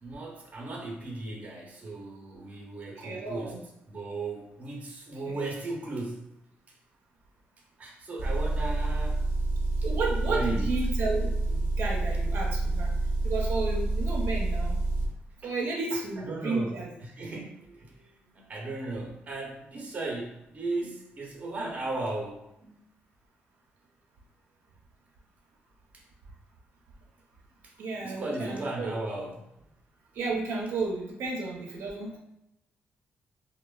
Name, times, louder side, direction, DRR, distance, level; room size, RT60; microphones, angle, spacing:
voice 1, 0.0-6.3 7.8-9.2 10.2-10.7 15.4-15.5 15.9-16.0 16.2-22.8 28.0-29.4, right 2 dB, 35° right, -1 dB, 0.6 m, -36 dB
voice 2, 3.0-3.6 5.3-5.4 9.8-12.9 13.2-14.8 15.4-16.9 27.8-28.9 30.1-32.2, right 3 dB, 80° right, -2 dB, 0.5 m, -32 dB
Motor vehicle (road) / Engine, 8.2-15.1, right 2 dB, 65° left, 0.9 m, -28 dB
3.0 x 2.1 x 2.2 m, 0.83 s
cardioid pair, 125°, 4 cm